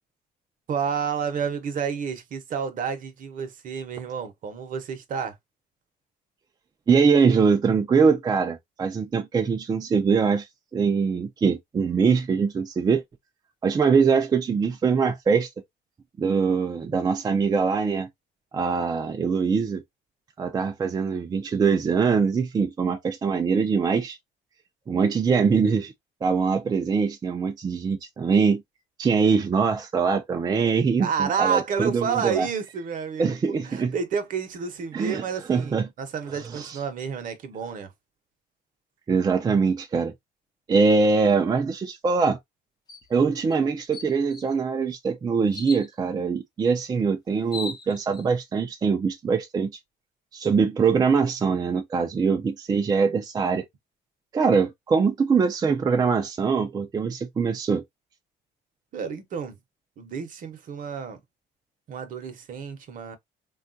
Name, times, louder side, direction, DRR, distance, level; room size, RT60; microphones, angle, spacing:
voice 1, 0.7-5.4 31.0-37.9 58.9-59.6 60.0-61.2 61.9-63.2, right 6 dB, 50° right, 0.8 m, -30 dB
voice 2, 6.9-10.5 10.7-13.0 13.6-15.5 16.2-18.1 18.5-19.8 20.4-24.2 24.9-25.9 26.2-28.6 29.0-32.5 33.2-33.9 34.9-35.2 35.5-35.8 39.1-40.1 40.7-42.4 43.1-49.7 50.3-53.7 54.3-57.8, right 5 dB, 25° right, 0.4 m, -23 dB
sound 1, 42.9-43.1 43.5-43.6 43.9-44.5 45.5-45.9 47.0-47.1 47.4-48.2, left 4 dB, 25° left, 0.6 m, -38 dB
3.4 x 2.3 x 2.5 m
cardioid pair, 110°, 17 cm